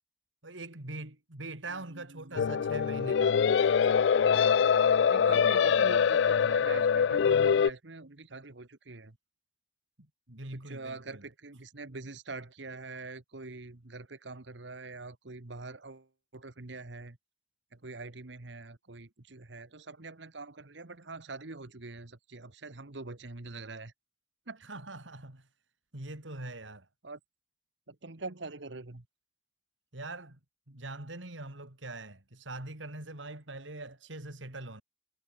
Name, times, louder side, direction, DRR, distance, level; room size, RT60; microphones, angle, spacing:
voice 1, 0.4-3.4 10.3-11.2 24.6-25.5 25.9-26.9 29.9-30.4 30.7-34.8, right 2 dB, 90° right, 3.8 m, -42 dB
voice 2, 1.7-2.5 5.1-9.2 10.5-16.1 16.3-17.2 17.7-23.9 24.5-24.6 27.0-27.2 27.9-29.0, right 3 dB, 70° right, 1.5 m, -44 dB
sound 1, 2.4-7.7, left 7 dB, 70° left, 0.4 m, -24 dB
head